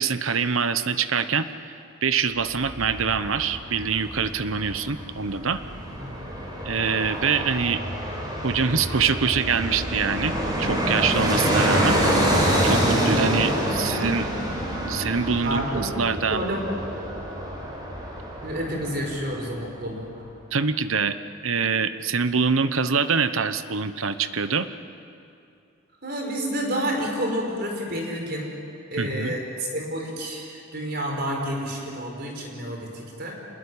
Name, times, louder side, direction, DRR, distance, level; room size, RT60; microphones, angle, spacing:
voice 1, 0.0-1.5 2.0-5.6 6.6-7.8 8.4-12.0 12.4-14.3 14.8-16.4 20.5-21.2 21.4-24.7 29.0-29.3, right 5 dB, 75° right, 11 dB, 1.0 m, -25 dB
Fixed-wing aircraft airplane, 2.5-19.4 19.7-19.8, equal, 20° right, 5.5 m, -27 dB
voice 2, 15.4-15.8 16.3-16.6 18.4-20.1 26.0-28.6 28.9-33.4, equal, 50° right, 1 dB, 5.1 m, -29 dB
26.5 x 20.5 x 9.9 m, 2.5 s
head